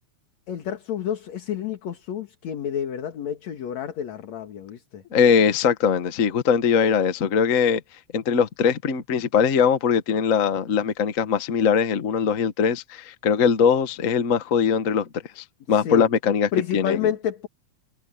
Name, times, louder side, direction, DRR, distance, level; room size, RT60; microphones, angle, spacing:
voice 1, 0.5-5.0 15.7-16.1 16.5-17.5, left 9 dB, 60° left, 2.9 m, -29 dB
voice 2, 5.1-7.8 8.1-15.1 15.4-17.0, left 6 dB, 90° left, 0.7 m, -21 dB
omnidirectional pair, 3.7 m